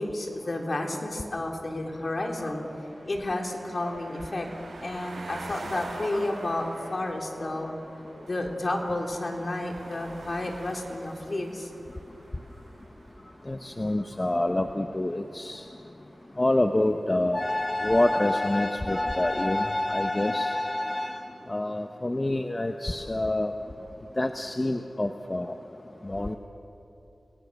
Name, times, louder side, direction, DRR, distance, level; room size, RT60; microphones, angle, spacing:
voice 1, 0.0-4.5 4.8-11.9, left 1 dB, 50° left, 2 dB, 3.3 m, -31 dB
sound 1, 1.8-13.8, right 2 dB, 85° right, 4.9 m, -46 dB
voice 2, 13.5-15.6 16.4-21.2 21.5-23.5 24.2-25.5 26.0-26.4, left 1 dB, 30° left, 5 dB, 1.0 m, -26 dB
29.5 x 19.0 x 6.6 m, 3.0 s
wide cardioid pair, 60°, 0 cm